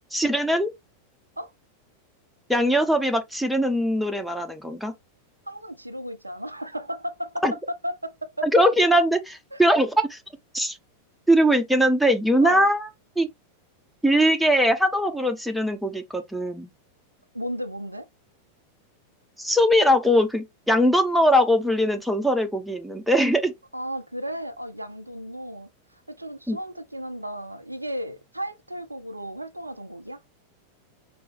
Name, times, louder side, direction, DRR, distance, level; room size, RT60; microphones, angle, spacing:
voice 1, 0.1-0.7 2.5-4.9 7.4-7.5 8.5-10.2 10.5-10.8 11.3-12.9 13.2-13.3 14.0-16.7 19.4-23.5 26.5-26.6, equal, ahead, 0.8 m, -21 dB
voice 2, 5.5-8.5 9.5-9.6 12.4-12.7 17.3-18.1 23.7-30.2, equal, 85° right, 0.5 m, -34 dB
4.7 x 3.4 x 3.3 m
figure-of-eight pair, 90°, 0 cm